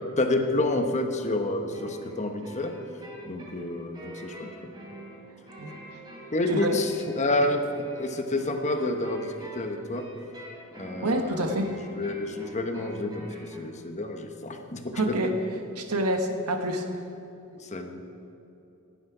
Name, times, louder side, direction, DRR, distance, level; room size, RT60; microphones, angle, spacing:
voice 1, 0.2-2.7 3.2-4.7 6.3-7.6 7.9-10.0 10.7-15.2 17.6-18.0, left 2 dB, 30° left, 5 dB, 1.0 m, -29 dB
sound 1, 1.7-13.6, right 1 dB, 20° right, 3.3 m, -46 dB
voice 2, 11.0-11.8 14.9-15.3 15.8-17.0, right 1 dB, 90° right, 6 dB, 1.3 m, -27 dB
16.5 x 10.5 x 4.9 m, 2.9 s
head